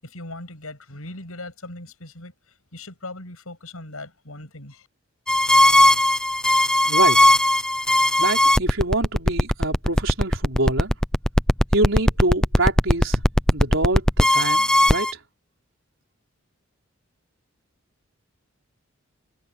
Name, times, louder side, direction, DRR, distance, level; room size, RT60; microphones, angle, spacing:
voice 1, 0.0-2.3 2.7-4.9, left 2 dB, 85° left, 7.8 m, -39 dB
sound 1, 5.3-15.1, left 1 dB, 5° left, 0.5 m, -17 dB
voice 2, 6.8-7.2 8.2-10.9 11.7-13.2 13.5-15.1, right 2 dB, 65° right, 5.0 m, -25 dB
head